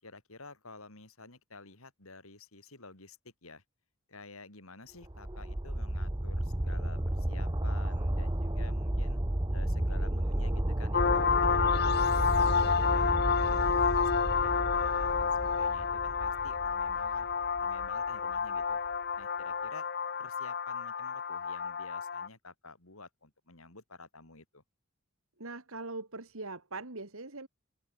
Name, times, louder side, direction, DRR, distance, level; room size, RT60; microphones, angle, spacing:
voice 1, 0.0-3.6 4.1-9.2 9.5-11.9 12.3-17.3 17.6-18.8 19.1-19.9 20.2-24.6, left 3 dB, 75° left, 4.7 m, -51 dB
sound 1, 5.0-17.9 18.3-18.4, right 1 dB, 20° right, 1.0 m, -32 dB
sound 2, 10.9-22.3, left 6 dB, 45° left, 0.7 m, -29 dB
voice 2, 25.4-27.5, right 3 dB, 70° right, 2.6 m, -41 dB
open air
head